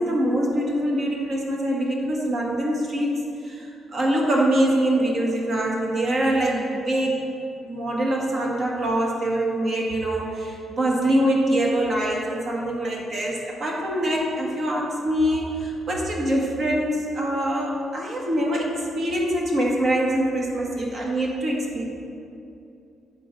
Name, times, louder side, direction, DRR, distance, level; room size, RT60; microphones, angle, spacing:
voice 1, 0.0-3.2 3.4-7.2 7.6-21.8, right 1 dB, 50° right, -2 dB, 1.3 m, -24 dB
9.4 x 3.8 x 5.1 m, 2.7 s
cardioid pair, 90°, 0 cm